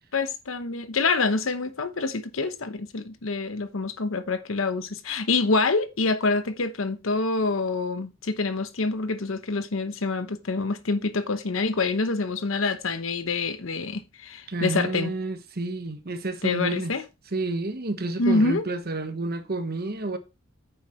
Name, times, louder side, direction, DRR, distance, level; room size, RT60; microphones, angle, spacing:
voice 1, 0.1-15.1 16.4-17.0 18.2-18.7, left 3 dB, 75° left, 0.9 m, -26 dB
voice 2, 14.5-16.9 17.3-20.2, right 2 dB, 50° right, 1.3 m, -30 dB
9.3 x 7.2 x 3.1 m
head